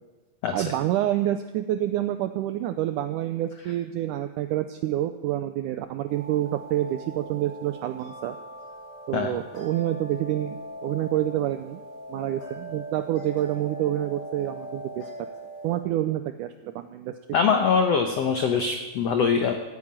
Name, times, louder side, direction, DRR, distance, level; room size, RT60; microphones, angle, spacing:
voice 1, 0.5-8.4 9.1-11.8 12.1-15.1 15.6-17.2, right 13 dB, 90° right, 9 dB, 1.8 m, -28 dB
sound 1, 6.1-15.8, right 1 dB, 55° left, 5.2 m, -40 dB
voice 2, 17.3-19.5, left 6 dB, 85° left, 5 dB, 1.4 m, -23 dB
15.0 x 9.7 x 8.8 m, 1.2 s
omnidirectional pair, 4.3 m